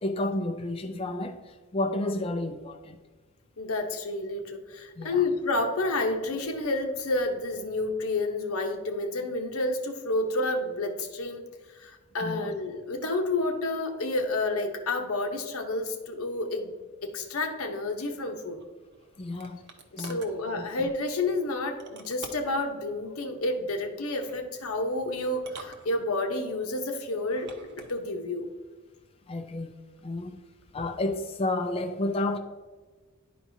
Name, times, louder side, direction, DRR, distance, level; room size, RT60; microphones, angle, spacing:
voice 1, 0.0-1.4 1.7-3.0 5.0-5.2 12.2-12.5 19.2-19.7 20.0-20.3 29.3-29.7 30.0-30.4 30.7-32.4, left 2 dB, 25° left, 5 dB, 0.4 m, -31 dB
voice 2, 3.6-11.4 11.8-16.7 17.0-18.6 19.9-28.5, left 2 dB, 85° left, 5 dB, 0.9 m, -30 dB
sound 1, 18.6-20.4 21.8-22.6 24.0-24.4 25.3-26.4 27.2-28.0, right 3 dB, 50° right, 0.8 m, -47 dB
11.0 x 4.7 x 2.7 m, 1.4 s
head